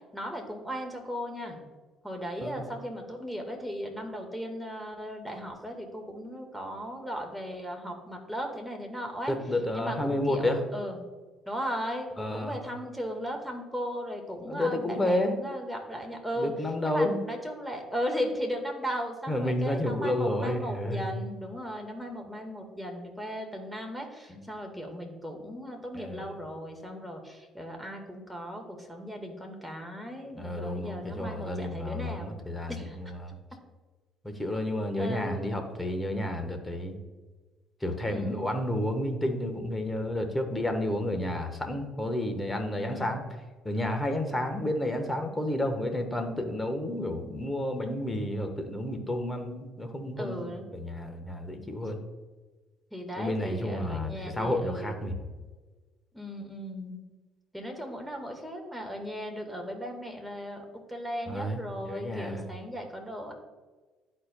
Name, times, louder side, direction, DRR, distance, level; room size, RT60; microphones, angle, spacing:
voice 1, 0.1-1.6 2.0-9.3 9.7-11.0 11.5-16.5 16.8-32.4 32.7-33.0 35.0-35.5 38.1-38.5 42.8-43.2 50.2-50.7 52.9-54.9 56.1-57.0 57.5-63.3, equal, ahead, 2 dB, 1.6 m, -37 dB
voice 2, 9.3-10.6 12.2-12.6 14.5-15.4 16.4-17.2 19.3-21.1 24.3-24.4 25.9-26.3 30.3-33.3 34.2-37.0 37.8-43.2 43.6-52.0 53.2-55.2 61.3-62.5, left 1 dB, 15° left, 5 dB, 1.2 m, -31 dB
11.5 x 4.4 x 2.3 m, 1.3 s
supercardioid pair, 65°, 0 cm